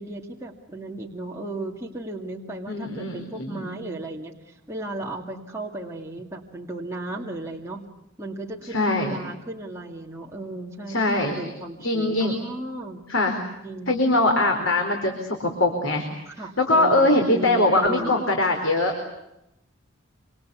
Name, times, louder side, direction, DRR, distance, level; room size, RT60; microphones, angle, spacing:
voice 1, 0.0-7.8 8.2-13.0 13.6-14.0 16.3-18.3, right 2 dB, 15° right, -1 dB, 2.4 m, -35 dB
voice 2, 2.7-3.8 8.7-9.2 10.9-11.4 11.8-12.4 13.1-13.4 13.9-16.1 16.6-19.0, left 2 dB, 70° left, 3 dB, 4.3 m, -22 dB
27.0 x 26.5 x 8.3 m, 0.86 s
head